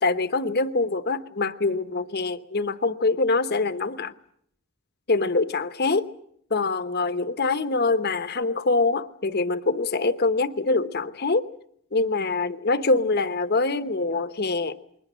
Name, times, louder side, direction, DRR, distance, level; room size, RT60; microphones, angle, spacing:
voice 1, 0.0-4.1 5.1-6.1 6.5-11.5 11.9-14.8, left 3 dB, 50° left, 1.0 m, -24 dB
28.5 x 22.0 x 6.3 m
head